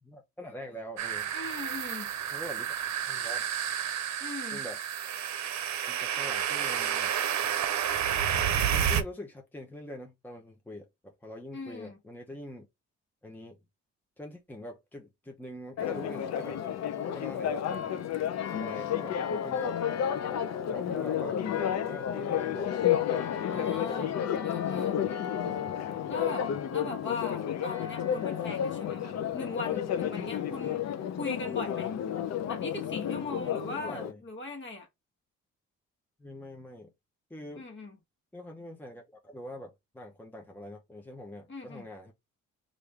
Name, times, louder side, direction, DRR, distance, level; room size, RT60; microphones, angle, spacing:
voice 1, 0.0-1.3 2.3-2.7 3.1-3.4 4.5-4.8 5.8-7.1 8.7-12.7 13.2-13.6 14.2-16.6 17.1-18.1 18.5-19.8 20.7-22.7 23.4-23.9 27.8-27.9 30.5-30.6 33.6-34.2 36.2-36.9 37.3-37.7 38.3-42.1, left 1 dB, 5° left, 0.7 m, -44 dB
sound 1, 1.0-9.0, right 9 dB, 65° right, 0.7 m, -30 dB
voice 2, 1.3-2.1 4.2-4.6 11.5-12.0 23.4-25.0 26.0-30.8 31.2-31.9 32.5-34.9 37.6-38.0 41.5-41.9, left 3 dB, 40° left, 1.3 m, -39 dB
Church bell, 15.8-34.1, left 9 dB, 60° left, 0.6 m, -31 dB
3.2 x 2.6 x 3.2 m
cardioid pair, 90°, 30 cm